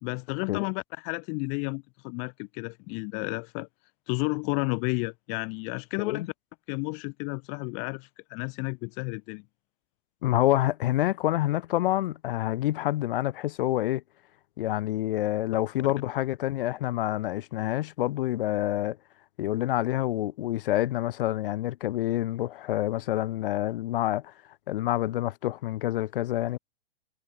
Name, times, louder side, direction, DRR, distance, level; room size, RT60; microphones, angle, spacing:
voice 1, 0.0-3.7 4.1-6.2 6.7-9.4, left 40 dB or more, 20° left, 0.5 m, -32 dB
voice 2, 10.2-14.0 14.6-19.0 19.4-24.3 24.7-26.6, left 14 dB, 55° left, 1.0 m, -27 dB
hypercardioid pair, 145°, 33 cm